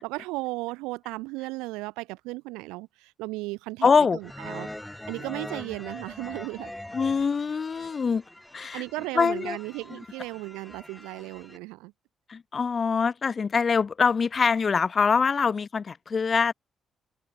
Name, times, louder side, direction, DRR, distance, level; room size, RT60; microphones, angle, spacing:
voice 1, 0.0-4.7 5.1-6.7 8.7-11.9, right 23 dB, 80° right, 2.9 m, -35 dB
voice 2, 3.8-4.2 6.9-8.2 8.5-8.8 9.1-9.6 12.3-16.5, left 5 dB, 45° left, 1.1 m, -24 dB
sound 1, 4.2-11.6, left 1 dB, 10° left, 2.6 m, -42 dB
open air
hypercardioid pair, 45°, 0 cm